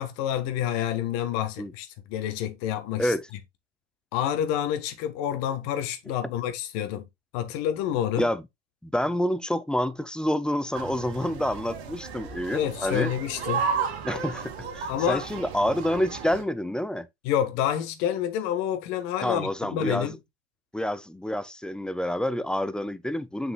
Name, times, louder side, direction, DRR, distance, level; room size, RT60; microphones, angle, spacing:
voice 1, 0.0-3.1 4.1-7.1 7.3-8.3 12.5-13.7 14.9-15.3 17.2-20.2, left 10 dB, 55° left, 1.7 m, -28 dB
voice 2, 8.8-13.1 14.0-17.1 19.2-20.2 20.7-23.5, equal, 5° left, 0.5 m, -28 dB
sound 1, 10.7-16.4, right 6 dB, 75° right, 2.8 m, -33 dB
7.4 x 6.2 x 2.4 m
hypercardioid pair, 100°, 32 cm